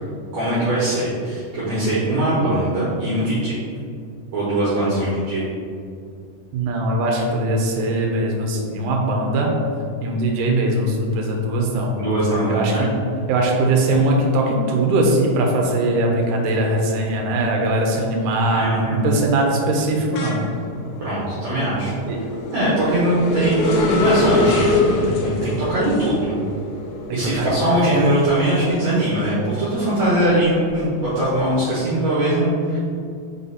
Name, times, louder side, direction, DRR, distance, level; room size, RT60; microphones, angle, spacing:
voice 1, 0.3-3.6 4.3-5.5 12.0-12.9 18.5-19.1 21.0-21.9 22.5-26.4 27.1-32.8, right 1 dB, 60° right, -10 dB, 2.4 m, -21 dB
voice 2, 6.5-9.6 10.0-12.0 12.5-12.9 13.3-18.7 19.0-20.4 22.1-22.2 27.1-27.5, right 1 dB, 80° right, 0 dB, 2.3 m, -20 dB
sound 1, 17.2-17.6 18.0-29.3 29.7-31.4, left 2 dB, 85° left, 2.3 m, -25 dB
5.7 x 4.0 x 4.1 m, 2.3 s
omnidirectional pair, 3.8 m